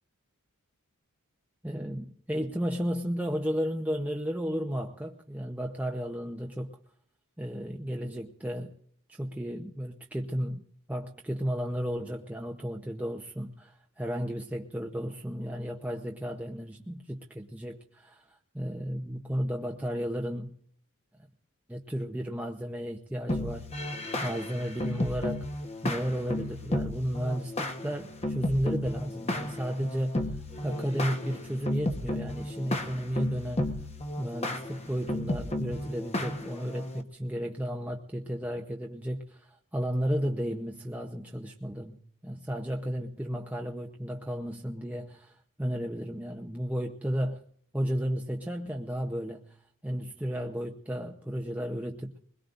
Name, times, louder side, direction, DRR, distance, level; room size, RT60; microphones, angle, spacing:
voice 1, 1.6-6.7 7.4-8.7 9.1-10.6 10.9-18.2 18.5-20.5 21.7-24.0 24.2-25.5 25.8-30.2 30.6-33.7 34.2-47.4 47.7-49.5 49.8-52.1, equal, 5° right, 0.7 m, -33 dB
sound 1, 23.3-37.0, left 1 dB, 30° left, 1.1 m, -33 dB
22.0 x 21.0 x 2.5 m
head